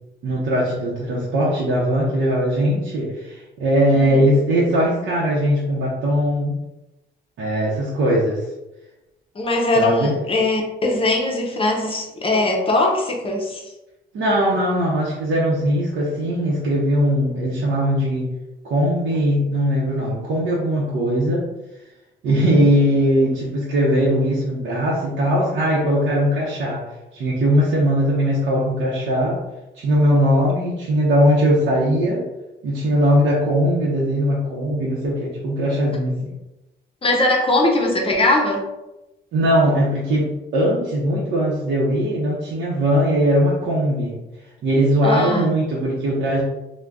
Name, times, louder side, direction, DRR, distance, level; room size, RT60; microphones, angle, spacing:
voice 1, 0.2-6.6 7.4-8.5 9.8-10.1 14.1-18.3 18.6-21.5 22.2-26.8 27.1-29.4 29.7-32.2 32.6-36.3 39.3-44.2 44.6-46.4, equal, 70° right, -6 dB, 0.8 m, -20 dB
voice 2, 3.9-4.3 9.3-13.6 22.3-22.7 37.0-38.6 45.0-45.5, left 2 dB, 30° left, 0 dB, 0.6 m, -21 dB
2.4 x 2.2 x 3.4 m, 0.97 s
cardioid pair, 90°, 20 cm